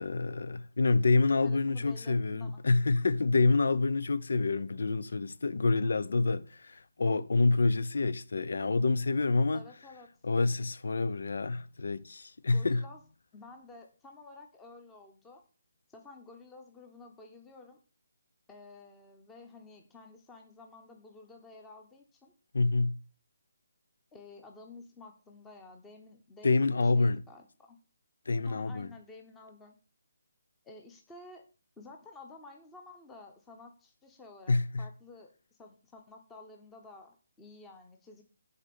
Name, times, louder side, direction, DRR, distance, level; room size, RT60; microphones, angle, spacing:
voice 1, 0.0-9.6 10.2-12.8 22.5-23.0 26.4-27.2 28.3-28.9 34.5-34.9, left 3 dB, 70° left, 0.8 m, -27 dB
voice 2, 1.4-2.7 9.5-10.1 12.5-13.0 13.3-15.4 15.9-17.8 18.5-22.3 24.1-27.8 28.4-29.8 30.6-31.5 31.8-38.2, left 3 dB, 10° left, 1.0 m, -52 dB
9.8 x 4.3 x 7.0 m
hypercardioid pair, 170°, 0 cm